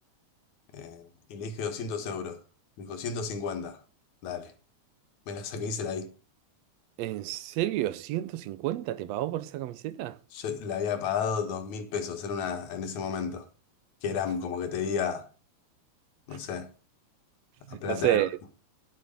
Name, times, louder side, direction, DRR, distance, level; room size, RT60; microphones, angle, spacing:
voice 1, 0.7-2.4 2.8-3.8 4.2-4.5 5.3-6.1 10.3-13.5 14.0-15.3 16.3-16.7 17.7-18.2, left 6 dB, 80° left, 2.8 m, -32 dB
voice 2, 7.0-10.2 17.7-18.3, right 14 dB, 75° right, 1.7 m, -30 dB
10.0 x 9.3 x 5.3 m
omnidirectional pair, 3.3 m